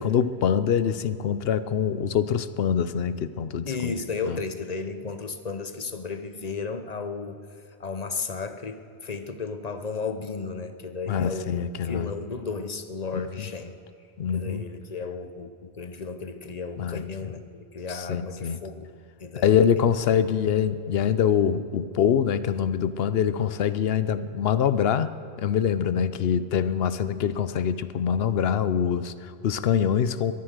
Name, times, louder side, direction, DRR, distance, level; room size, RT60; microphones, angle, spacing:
voice 1, 0.0-3.9 4.3-4.4 11.1-12.1 13.1-13.5 14.2-14.6 16.8-17.0 17.9-18.6 19.4-25.1 25.4-30.3, left 8 dB, 70° left, 13 dB, 0.9 m, -24 dB
voice 2, 3.7-7.4 7.8-13.7 14.3-18.9 19.2-19.9, left 4 dB, 40° left, 9 dB, 0.9 m, -34 dB
22.5 x 9.6 x 6.5 m, 2.6 s
omnidirectional pair, 1.1 m